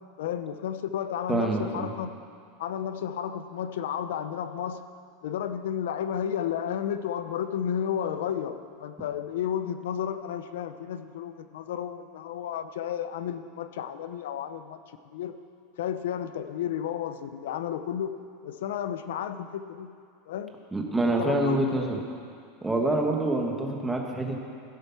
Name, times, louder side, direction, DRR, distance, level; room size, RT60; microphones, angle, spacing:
voice 1, 0.2-2.1 2.6-4.8 5.2-14.8 15.1-15.3 15.8-18.2 18.4-19.9 20.3-20.5 21.0-21.6, left 9 dB, 85° left, 11 dB, 0.7 m, -32 dB
voice 2, 1.3-1.9 20.7-22.0 22.6-24.4, right 2 dB, 10° right, 1 dB, 1.4 m, -26 dB
16.5 x 8.1 x 5.9 m, 2.3 s
supercardioid pair, 150°, 0 cm